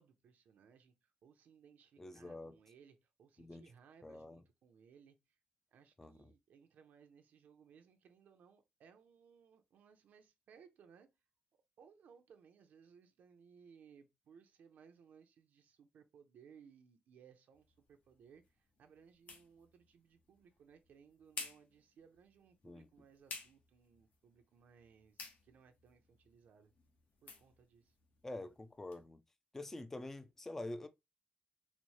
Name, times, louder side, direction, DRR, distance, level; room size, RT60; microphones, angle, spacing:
voice 1, 0.0-5.2 5.7-11.1 11.8-26.7 27.2-27.9, right 7 dB, 80° right, 0.6 m, -63 dB
voice 2, 2.0-2.6 3.4-3.6 4.0-4.4 6.0-6.3 22.6-22.9 28.2-29.2 29.5-30.9, left 2 dB, 15° left, 0.3 m, -46 dB
sound 1, 17.5-29.0, left 4 dB, 65° left, 0.9 m, -55 dB
4.1 x 2.1 x 3.0 m
wide cardioid pair, 170°, 3 cm